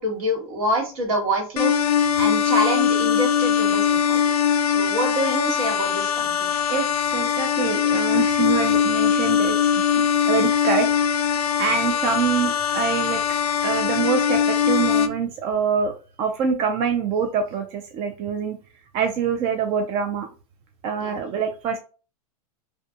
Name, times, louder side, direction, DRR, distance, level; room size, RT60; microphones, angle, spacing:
voice 1, 0.0-1.7 2.2-4.2 4.7-6.6 21.0-21.2, equal, 60° right, 1 dB, 1.4 m, -26 dB
sound 1, 1.6-15.1, left 8 dB, 70° left, 0.4 m, -21 dB
voice 2, 6.7-9.6 10.0-10.9 11.6-13.2 13.6-15.9 16.2-18.6 18.9-20.3 20.8-21.8, right 6 dB, 30° right, 5 dB, 0.3 m, -25 dB
2.3 x 2.2 x 2.7 m, 0.35 s
hypercardioid pair, 125°, 20 cm